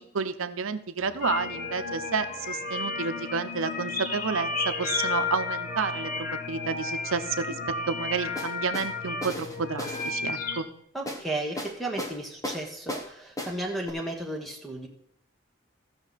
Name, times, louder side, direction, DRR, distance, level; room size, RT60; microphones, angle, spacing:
voice 1, 0.2-7.6 7.9-10.7, right 5 dB, 85° right, 10 dB, 0.7 m, -30 dB
sound 1, 1.0-10.2, equal, 30° right, 1.0 m, -49 dB
sound 2, 1.2-10.6, left 4 dB, 40° left, 1.0 m, -32 dB
sound 3, 8.4-8.9 9.2-10.1 11.1-11.2 11.6-12.2 12.4-13.1 13.4-13.6 13.9-14.0, left 1 dB, 15° left, 1.0 m, -35 dB
voice 2, 10.9-14.9, right 1 dB, ahead, 1 dB, 1.3 m, -34 dB
15.5 x 6.1 x 4.1 m, 0.72 s
head